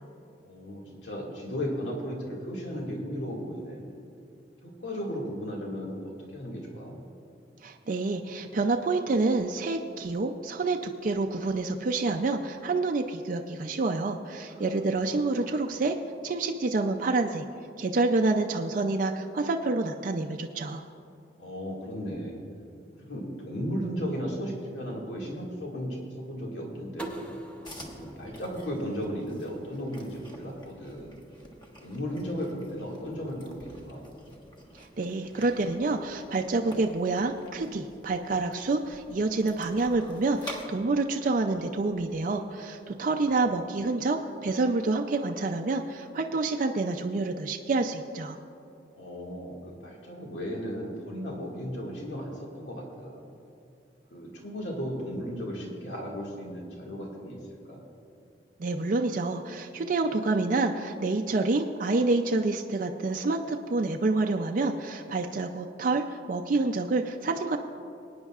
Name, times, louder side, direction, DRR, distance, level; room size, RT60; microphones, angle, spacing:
voice 1, 0.4-3.9 4.6-7.0 21.4-22.4 23.0-27.2 28.0-31.2 31.8-34.1 48.9-53.3 54.1-57.4 57.7-57.8, equal, 85° left, -2 dB, 2.0 m, -35 dB
voice 2, 7.6-16.0 16.2-17.4 17.8-20.8 34.7-48.4 58.6-67.6, right 3 dB, 50° right, 4 dB, 0.4 m, -28 dB
sound 1, 27.0-29.8, right 1 dB, 5° left, 0.8 m, -43 dB
sound 2, 27.6-40.6, equal, 25° left, 1.3 m, -48 dB
22.5 x 9.5 x 2.4 m, 2.6 s
head